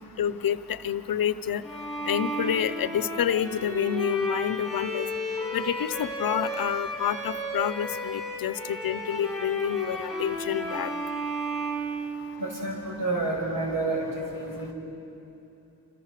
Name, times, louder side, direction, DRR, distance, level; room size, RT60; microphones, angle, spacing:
voice 1, 0.2-1.6 2.0-5.1 5.5-10.9, left 9 dB, 85° left, 14 dB, 0.8 m, -28 dB
Bowed string instrument, 1.6-12.6, right 1 dB, ahead, 7.3 m, -33 dB
voice 2, 12.4-14.7, right 2 dB, 65° right, 0 dB, 6.1 m, -29 dB
28.0 x 27.0 x 6.7 m, 2.9 s
wide cardioid pair, 110°, 34 cm